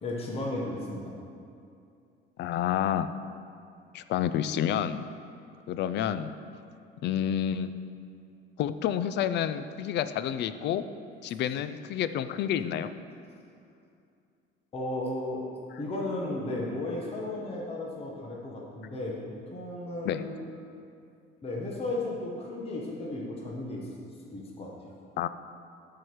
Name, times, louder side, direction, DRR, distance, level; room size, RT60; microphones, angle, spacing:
voice 1, 0.0-1.1 14.7-15.5 15.8-19.2 19.5-20.5 21.4-24.0 24.3-24.7, left 2 dB, 30° left, -3 dB, 1.1 m, -34 dB
voice 2, 2.4-3.1 3.9-5.1 5.7-6.3 7.0-7.7 8.6-10.8 11.2-12.9 20.0-20.2 25.2-25.3, left 10 dB, 55° left, 12 dB, 0.4 m, -29 dB
13.5 x 4.8 x 4.7 m, 2.5 s
cardioid pair, 160°, 21 cm